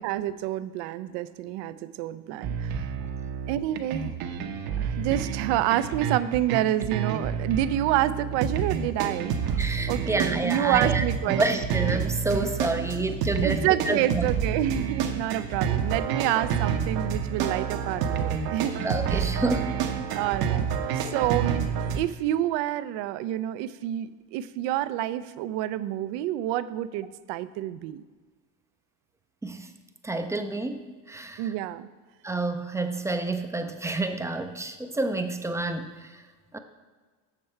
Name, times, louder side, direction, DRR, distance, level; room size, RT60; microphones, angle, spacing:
voice 1, 0.0-2.9 3.5-4.1 4.8-9.6 9.9-11.4 12.3-12.9 13.4-18.7 19.1-19.3 20.2-20.7 20.9-28.0 31.4-31.9, right 13 dB, 80° right, 14 dB, 0.5 m, -28 dB
sound 1, 2.4-22.0, right 7 dB, 60° right, 0.9 m, -29 dB
voice 2, 9.6-14.2 18.8-19.8 29.4-29.7 30.0-31.4 32.2-36.2 36.5-36.6, right 2 dB, 10° right, 7 dB, 0.3 m, -29 dB
7.4 x 6.5 x 4.4 m, 1.4 s
cardioid pair, 125°, 41 cm